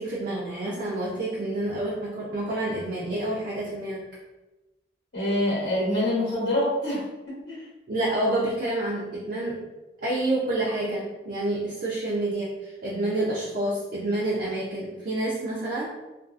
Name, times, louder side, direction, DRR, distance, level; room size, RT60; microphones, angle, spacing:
voice 1, 0.0-4.1 7.9-9.6 10.0-15.9, right 1 dB, 50° right, -5 dB, 0.4 m, -28 dB
voice 2, 5.1-7.6, left 1 dB, 65° left, -8 dB, 0.8 m, -26 dB
2.5 x 2.3 x 2.4 m, 1.1 s
head